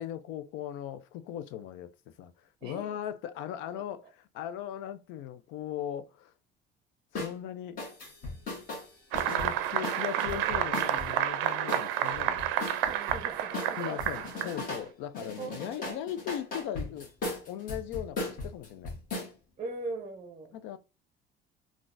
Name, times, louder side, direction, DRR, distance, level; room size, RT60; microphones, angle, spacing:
voice 1, 0.0-1.9 2.2-6.3 7.1-7.8 9.3-12.5 13.8-17.1 17.5-18.9 20.5-20.8, left 10 dB, 80° left, 0.5 m, -38 dB
voice 2, 2.6-3.0 3.7-3.8 12.9-14.0 15.4-16.0 19.6-20.6, right 3 dB, 25° right, 0.6 m, -40 dB
sound 1, 7.2-7.4 7.8-11.1 11.7-13.2 13.5-14.9 15.1-19.3, left 2 dB, 45° left, 1.4 m, -37 dB
sound 2, 9.1-14.6, right 11 dB, 90° right, 0.5 m, -30 dB
3.8 x 2.4 x 2.5 m
cardioid pair, 150°, 20 cm